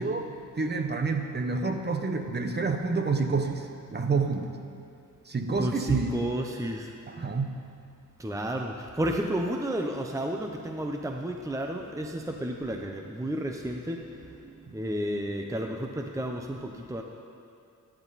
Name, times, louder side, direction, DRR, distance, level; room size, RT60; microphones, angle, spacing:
voice 1, 0.0-4.6 5.3-6.1 7.1-7.5, right 4 dB, 35° right, 5 dB, 1.2 m, -28 dB
voice 2, 5.6-6.9 8.2-14.0 14.7-17.0, right 1 dB, 10° right, 2 dB, 0.8 m, -31 dB
22.5 x 10.5 x 4.2 m, 2.5 s
cardioid pair, 105°, 31 cm